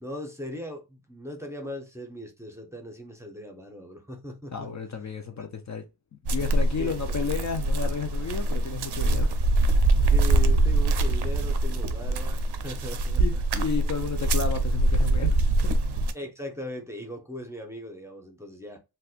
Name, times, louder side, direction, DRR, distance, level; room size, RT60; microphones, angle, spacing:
voice 1, 0.0-4.7 5.3-5.4 6.8-7.0 10.0-13.4 16.1-18.8, equal, 5° right, 0.7 m, -39 dB
voice 2, 4.5-5.8 6.1-9.3 13.2-15.4 15.6-15.8, left 6 dB, 45° left, 0.5 m, -32 dB
sound 1, 6.3-16.1, right 2 dB, 85° right, 0.5 m, -24 dB
4.1 x 2.2 x 2.4 m
wide cardioid pair, 95°, 39 cm